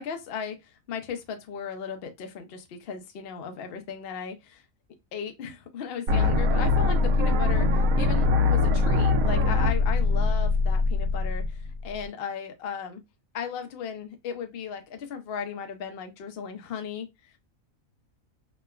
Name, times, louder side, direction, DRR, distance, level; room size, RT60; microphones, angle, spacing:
voice 1, 0.0-4.6 5.1-13.0 13.3-17.4, left 7 dB, 60° left, 0.6 m, -36 dB
sound 1, 6.1-12.0, left 3 dB, 85° right, 1.0 m, -22 dB
3.2 x 2.2 x 2.2 m
omnidirectional pair, 1.4 m